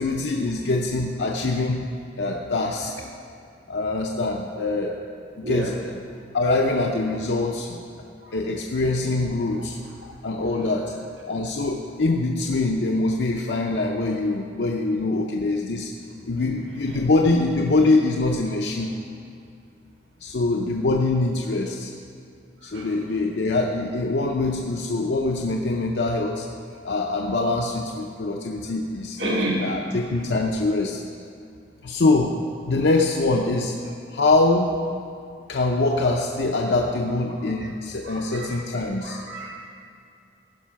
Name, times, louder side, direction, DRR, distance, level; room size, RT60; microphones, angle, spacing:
voice 1, 0.0-1.9 2.2-2.9 3.7-5.0 5.4-5.7 6.3-7.8 8.3-9.8 10.2-10.9 11.3-15.9 16.3-18.9 20.2-21.9 22.6-26.5 26.8-29.2 29.6-31.0 31.8-32.4 32.6-33.7 34.1-34.7 35.5-39.2, left 2 dB, 75° left, 1 dB, 0.6 m, -23 dB
voice 2, 29.2-29.6 37.6-37.7 38.0-38.6 39.0-39.5, right 1 dB, 90° right, -4 dB, 2.5 m, -30 dB
15.0 x 5.5 x 5.7 m, 2.5 s
head